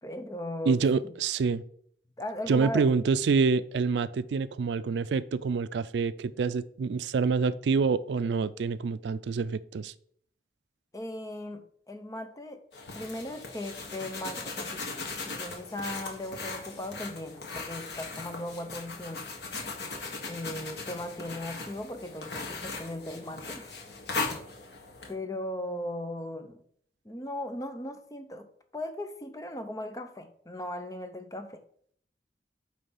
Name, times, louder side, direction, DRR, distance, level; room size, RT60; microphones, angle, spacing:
voice 1, 0.0-1.1 2.2-2.8 10.9-12.6 12.9-19.4 20.3-23.8 25.1-26.6 27.0-28.5 28.7-31.6, left 1 dB, 20° left, 8 dB, 0.6 m, -38 dB
voice 2, 0.7-1.6 2.5-9.9, right 4 dB, 85° right, 15 dB, 0.4 m, -27 dB
sound 1, 12.7-25.1, left 3 dB, 80° left, 1.5 m, -38 dB
8.9 x 3.3 x 5.6 m, 0.63 s
head